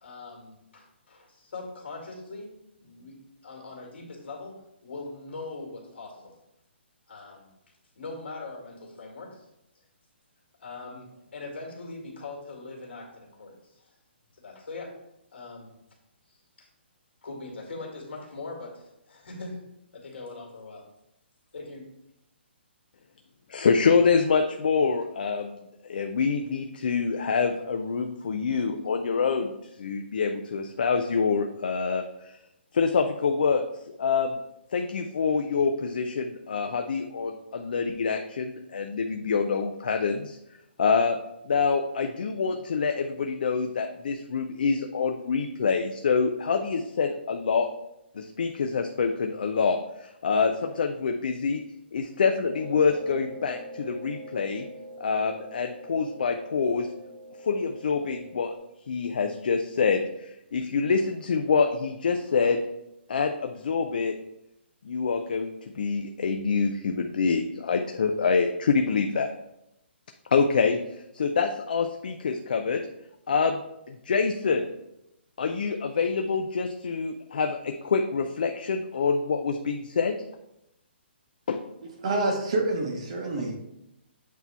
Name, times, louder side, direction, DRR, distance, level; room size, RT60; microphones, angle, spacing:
voice 1, 0.0-3.2 3.4-6.4 7.1-7.5 8.0-9.5 10.6-13.9 14.4-15.0 15.3-15.7 16.3-16.7 17.2-19.6 19.9-20.9 21.5-21.9, left 3 dB, 65° left, 0 dB, 2.1 m, -41 dB
voice 2, 23.5-25.6 25.8-29.5 29.8-32.3 32.7-33.6 34.0-34.4 34.7-40.4 40.8-41.2 41.4-47.7 48.2-51.6 51.9-54.6 55.0-56.9 57.4-58.5 58.9-62.6 63.1-64.1 64.8-69.3 70.3-70.8 71.1-72.8 73.3-73.6 73.9-74.7 75.4-80.2 81.5-81.6, left 5 dB, 50° left, 5 dB, 0.4 m, -26 dB
sound 1, 52.4-58.6, right 1 dB, 5° right, 1.0 m, -44 dB
voice 3, 82.0-83.5, right 2 dB, 30° right, 2 dB, 0.8 m, -27 dB
8.1 x 2.8 x 4.4 m, 0.84 s
hypercardioid pair, 180°, 6 cm